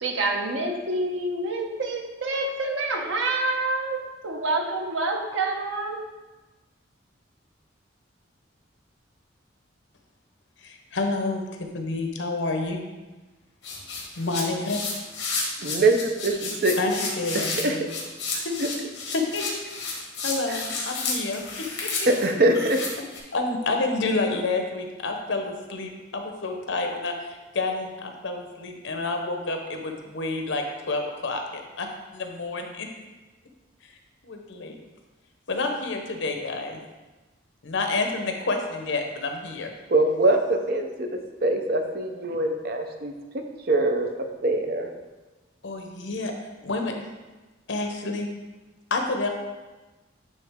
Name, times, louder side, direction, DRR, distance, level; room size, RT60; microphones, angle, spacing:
voice 1, 0.0-6.0, right 2 dB, 85° right, 3 dB, 0.9 m, -27 dB
voice 2, 10.6-12.8 14.2-14.8 16.8-17.9 19.3-19.4 20.2-21.4 21.8-21.9 23.3-32.9 34.2-34.7 35.5-36.8 37.6-39.7 45.6-46.3 46.6-46.9 47.7-48.3 48.9-49.3, left 3 dB, 75° left, 4 dB, 0.8 m, -29 dB
sound 1, 13.6-23.2, left 4 dB, 60° left, 1.5 m, -31 dB
voice 3, 15.6-16.8 17.5-17.8 18.3-18.7 20.5-20.6 22.1-22.8 39.9-44.1 44.4-44.9, right 2 dB, 50° right, 5 dB, 0.6 m, -23 dB
9.3 x 3.2 x 3.6 m, 1.2 s
head